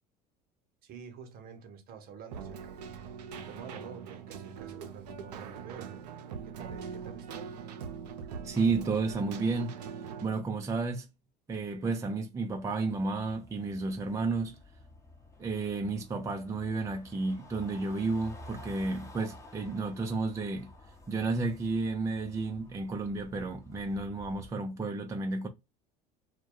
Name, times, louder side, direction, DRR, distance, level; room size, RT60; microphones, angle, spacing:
voice 1, 0.8-2.8 3.3-5.9 6.5-7.5, right 7 dB, 45° right, 0.8 m, -48 dB
Keyboard (musical), 2.3-10.3, right 6 dB, 75° right, 0.5 m, -42 dB
voice 2, 8.4-9.8 10.2-11.1 11.5-14.6 15.4-20.7 21.1-25.5, right 3 dB, 15° right, 0.5 m, -32 dB
sound 1, 12.9-24.5, left 1 dB, 15° left, 0.8 m, -52 dB
2.2 x 2.1 x 2.7 m
figure-of-eight pair, 70°, 21 cm